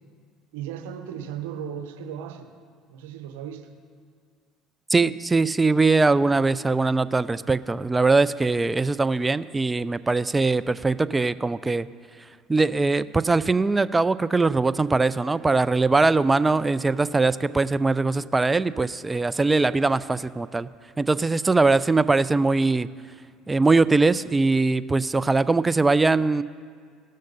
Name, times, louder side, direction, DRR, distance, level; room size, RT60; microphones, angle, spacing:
voice 1, 0.5-2.5 2.9-3.7 19.4-19.8, right 8 dB, 80° right, 7 dB, 0.9 m, -36 dB
voice 2, 4.9-11.9 12.5-20.7 21.0-22.9 23.5-26.4, right 3 dB, 20° right, 16 dB, 0.4 m, -21 dB
17.5 x 6.5 x 4.0 m, 2.1 s
hypercardioid pair, 75°, 0 cm